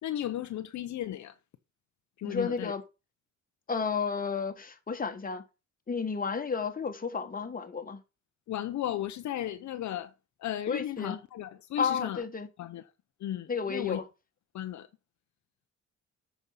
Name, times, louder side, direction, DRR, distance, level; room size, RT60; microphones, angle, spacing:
voice 1, 0.0-1.3 2.2-2.7 8.5-10.1 10.4-12.2 12.6-12.8 13.2-14.0 14.5-14.9, left 12 dB, 70° left, 0.8 m, -35 dB
voice 2, 2.2-2.8 3.7-5.4 5.9-8.0 10.7-11.2 11.8-12.5 13.5-14.0, left 5 dB, 30° left, 1.6 m, -32 dB
8.2 x 5.6 x 5.5 m
cardioid pair, 90°, 30 cm